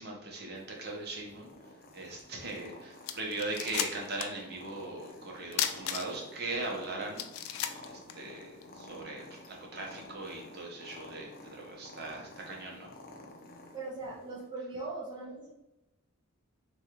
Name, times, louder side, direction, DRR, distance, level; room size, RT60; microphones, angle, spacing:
voice 1, 0.0-1.5 1.9-7.2 7.8-12.9, right 2 dB, 50° right, -1 dB, 0.9 m, -39 dB
Purr, 0.6-14.5, left 2 dB, 45° left, 0.6 m, -52 dB
sound 1, 2.6-2.7 3.0-4.4 4.7-4.8 5.5-6.4 6.8-6.9 7.2-8.7, left 10 dB, 85° left, 0.4 m, -34 dB
voice 2, 13.7-15.5, right 3 dB, 20° right, -5 dB, 0.6 m, -40 dB
3.3 x 2.4 x 4.3 m, 0.95 s
head